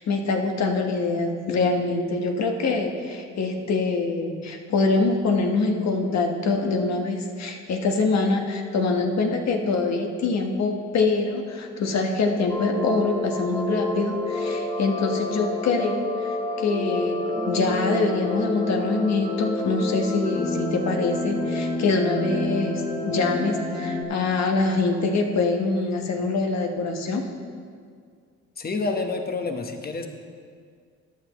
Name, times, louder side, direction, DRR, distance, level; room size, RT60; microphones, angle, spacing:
voice 1, 0.1-17.2 17.5-27.3, left 3 dB, 60° left, 2 dB, 1.3 m, -24 dB
sound 1, 12.5-24.0, left 1 dB, 15° left, 1.3 m, -29 dB
voice 2, 28.6-30.1, left 3 dB, 30° left, 4 dB, 1.1 m, -28 dB
14.0 x 10.0 x 3.1 m, 2.1 s
cardioid pair, 90°, 30 cm